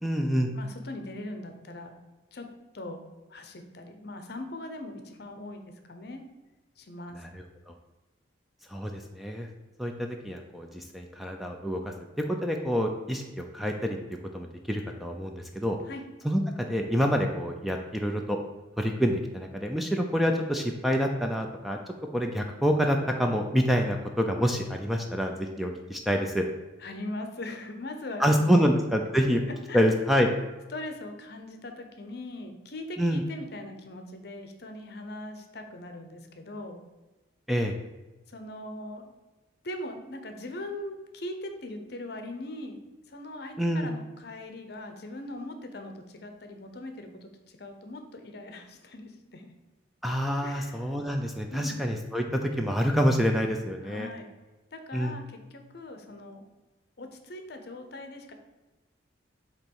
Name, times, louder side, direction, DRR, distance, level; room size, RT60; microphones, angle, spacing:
voice 1, 0.0-0.5 7.2-7.4 8.7-9.5 9.8-11.9 12.3-14.0 14.3-15.8 16.2-18.4 18.8-21.8 22.1-26.4 28.2-29.4 29.7-30.3 33.0-33.2 37.5-37.7 43.6-43.9 50.0-54.1 54.9-55.1, equal, ahead, 3 dB, 0.4 m, -27 dB
voice 2, 0.5-2.0 2.3-2.5 2.7-3.0 3.3-6.2 6.8-7.2 15.8-16.0 26.8-28.7 29.7-30.0 30.7-36.8 38.3-39.1 39.6-49.5 50.4-50.9 51.5-51.7 53.8-54.3 54.7-56.5 57.0-58.3, left 1 dB, 55° left, 6 dB, 0.8 m, -40 dB
7.3 x 3.0 x 5.4 m, 1.1 s
head